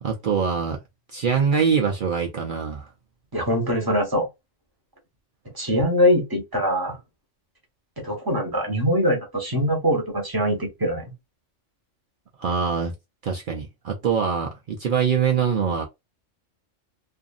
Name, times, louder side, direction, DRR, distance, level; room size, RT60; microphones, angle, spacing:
voice 1, 0.0-0.8 1.1-2.9 12.4-12.9 13.2-15.9, right 6 dB, 55° right, 0.6 m, -23 dB
voice 2, 3.3-4.3 5.5-7.0 8.0-11.1, equal, 20° right, 1.0 m, -23 dB
2.6 x 2.5 x 2.4 m
omnidirectional pair, 1.3 m